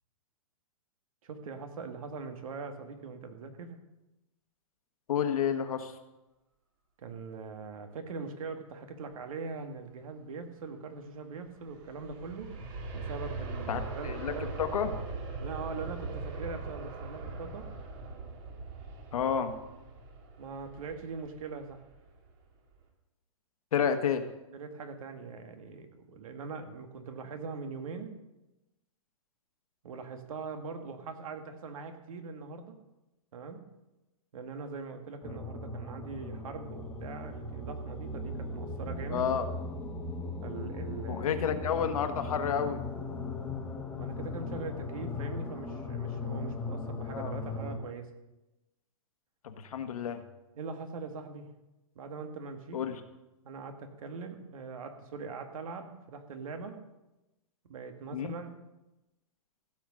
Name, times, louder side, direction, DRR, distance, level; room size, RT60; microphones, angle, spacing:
voice 1, 1.2-3.8 7.0-12.5 12.9-14.5 15.4-17.7 20.4-21.8 24.5-28.1 29.8-32.8 33.3-33.6 34.3-39.3 40.4-41.4 43.4-43.5 44.0-48.1 50.6-51.5 52.0-52.9 53.4-56.8 57.6-58.6, right 4 dB, 70° right, 6 dB, 1.9 m, -42 dB
voice 2, 5.1-5.9 13.7-14.3 14.6-14.9 19.1-19.5 23.7-24.2 39.1-39.5 41.1-42.8 47.1-47.4 49.4-50.2 52.7-52.9 58.1-58.3, left 8 dB, 75° left, 7 dB, 1.5 m, -30 dB
Aircraft, 11.5-22.3 22.7-22.8, right 3 dB, 40° right, 2.2 m, -41 dB
sound 1, 35.2-47.8, left 3 dB, 10° left, 1.3 m, -38 dB
16.0 x 6.2 x 6.4 m, 1.0 s
hypercardioid pair, 145°, 18 cm